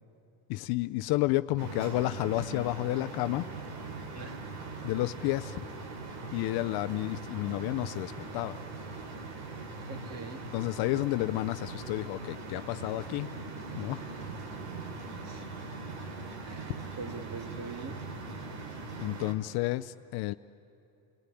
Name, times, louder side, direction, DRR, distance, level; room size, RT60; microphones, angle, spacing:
voice 1, 0.5-3.5 4.8-5.6 6.3-8.6 10.5-13.3 13.8-14.0 19.0-20.3, left 18 dB, 50° left, 12 dB, 0.6 m, -31 dB
sound 1, 1.6-19.3, right 3 dB, 90° right, 3.5 m, -41 dB
voice 2, 9.9-10.5 15.2-15.5 16.4-18.0, right 4 dB, 30° right, 7 dB, 1.9 m, -43 dB
29.0 x 19.5 x 9.9 m, 2.9 s
cardioid pair, 150°, 48 cm